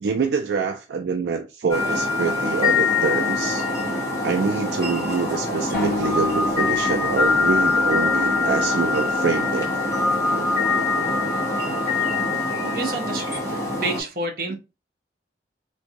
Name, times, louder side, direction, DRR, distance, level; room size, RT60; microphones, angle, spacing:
voice 1, 0.0-3.7 4.2-9.7 12.6-12.9 14.5-14.6, right 5 dB, 75° right, 0.4 m, -25 dB
sound 1, 1.7-14.0, left 3 dB, 15° left, 1.1 m, -23 dB
sound 2, 5.7-9.0, left 1 dB, 75° left, 0.8 m, -33 dB
voice 2, 12.7-14.6, right 2 dB, 55° right, 0.8 m, -29 dB
3.3 x 2.6 x 2.8 m
head